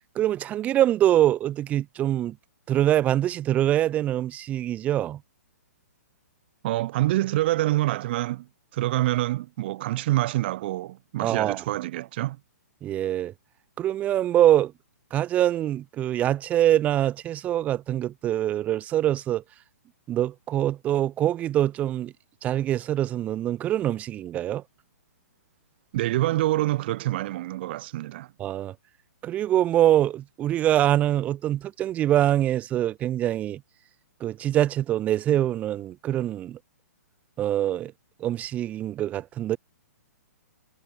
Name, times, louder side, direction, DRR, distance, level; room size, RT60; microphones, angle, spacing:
voice 1, 0.2-2.4 2.7-5.2 11.2-11.6 12.8-13.3 13.8-14.7 15.1-19.4 20.1-22.1 22.4-24.6 28.4-28.7 29.2-33.6 34.2-36.6 37.4-37.9 38.2-39.6, right 12 dB, 15° right, 0.4 m, -24 dB
voice 2, 6.6-8.5 8.7-12.4 25.9-28.3, right 16 dB, 40° right, 0.9 m, -26 dB
figure-of-eight pair, 120°, 9 cm